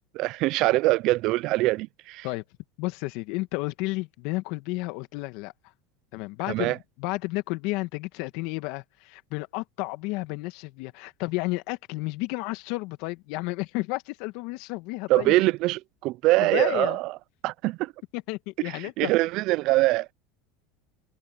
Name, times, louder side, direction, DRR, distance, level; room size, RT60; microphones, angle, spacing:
voice 1, 0.1-2.3 6.5-6.8 15.1-17.1 17.4-17.9 18.6-20.1, right 19 dB, 60° right, 0.5 m, -23 dB
voice 2, 2.8-5.5 6.1-15.3 16.4-17.0 18.1-19.1, left 22 dB, 65° left, 1.9 m, -32 dB
supercardioid pair, 105°, 0 cm